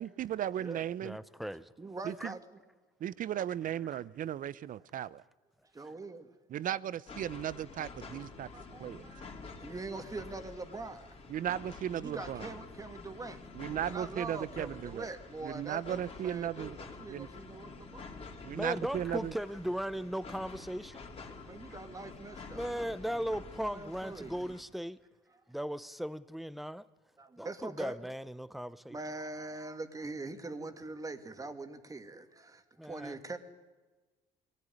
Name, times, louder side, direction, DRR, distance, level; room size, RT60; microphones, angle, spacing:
voice 1, 0.0-1.2 2.0-2.4 3.0-5.2 6.5-8.5 8.8-9.1 11.3-12.5 13.5-15.1 15.4-16.8 17.1-17.3 18.4-19.3, right 10 dB, 55° right, 0.7 m, -36 dB
voice 2, 1.0-1.7 2.2-2.3 18.5-21.0 22.5-25.0 25.5-26.9 27.4-29.0 32.8-33.2, equal, ahead, 0.8 m, -37 dB
voice 3, 1.8-2.6 5.7-6.3 8.2-8.3 8.5-9.3 9.6-11.4 11.9-13.4 13.9-18.1 21.5-23.0 23.7-24.4 27.2-28.0 28.9-33.4, right 3 dB, 20° right, 2.2 m, -43 dB
sound 1, 7.1-24.6, left 4 dB, 35° left, 3.6 m, -48 dB
22.5 x 17.5 x 9.8 m
cardioid pair, 110°, 17 cm